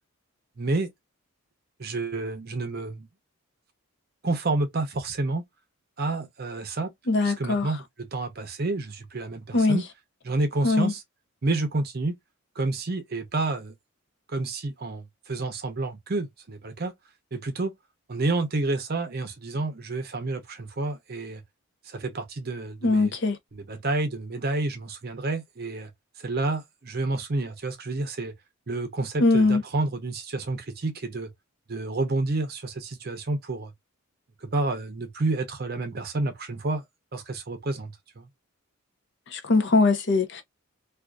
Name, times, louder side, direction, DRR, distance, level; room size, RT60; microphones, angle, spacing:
voice 1, 0.6-0.9 1.8-3.1 4.2-5.4 6.0-6.9 7.2-9.8 10.2-11.0 11.4-12.2 12.6-13.7 14.3-16.9 17.3-17.7 18.1-21.4 21.8-23.1 23.5-25.9 26.2-28.3 28.7-31.3 31.7-33.7 34.4-36.8 37.1-38.3, right 2 dB, 45° right, 0.6 m, -29 dB
voice 2, 7.1-7.7 9.5-9.8 10.6-10.9 22.8-23.4 29.2-29.6 39.3-40.4, left 3 dB, 50° left, 0.6 m, -21 dB
2.5 x 2.4 x 2.2 m
head